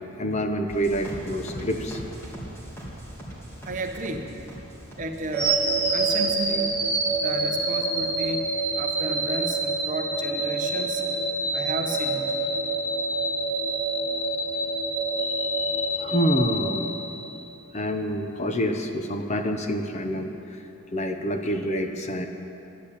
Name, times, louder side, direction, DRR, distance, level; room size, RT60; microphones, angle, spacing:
voice 1, 0.0-2.0 15.4-15.5 15.9-16.9 17.7-20.6 20.9-22.3, equal, 30° left, 6 dB, 0.7 m, -27 dB
sound 1, 0.7-7.6 7.9-8.5 8.8-9.3, equal, 10° left, 2.6 m, -41 dB
voice 2, 3.7-4.2 5.0-5.6 5.9-6.7 7.2-8.4 8.8-11.0 11.5-12.3, right 1 dB, 35° right, 3 dB, 1.1 m, -32 dB
sound 2, 5.3-17.5, right 2 dB, 10° right, 2.5 m, -26 dB
12.0 x 10.0 x 8.5 m, 2.8 s
head